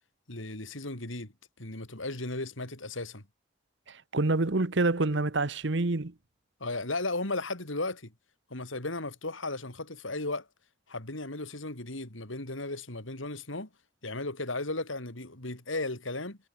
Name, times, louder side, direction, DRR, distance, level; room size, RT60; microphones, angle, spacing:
voice 1, 0.3-3.2 6.6-8.1 8.5-10.5 10.9-13.7 14.0-16.4, left 2 dB, 85° left, 4.2 m, -35 dB
voice 2, 3.9-6.1, right 2 dB, 65° right, 1.1 m, -27 dB
head